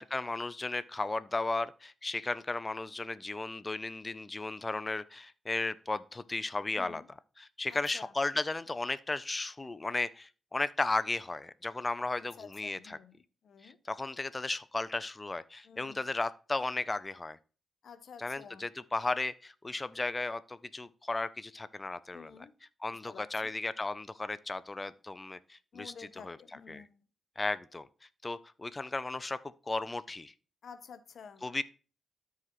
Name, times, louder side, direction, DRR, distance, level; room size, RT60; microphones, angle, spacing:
voice 1, 0.0-7.0 7.4-13.0 13.6-17.4 18.2-22.3 22.8-26.4 26.7-26.8 27.4-27.8 28.2-29.4 29.7-30.3 31.4-31.6, left 2 dB, 25° left, 16 dB, 0.5 m, -35 dB
voice 2, 6.7-7.1 7.7-8.1 12.4-13.2 13.4-13.8 15.6-16.0 17.8-18.7 22.1-22.5 22.9-23.5 25.7-26.9 30.6-31.5, left 6 dB, 70° left, 13 dB, 0.7 m, -51 dB
13.0 x 4.8 x 3.0 m, 0.37 s
supercardioid pair, 55°, 0 cm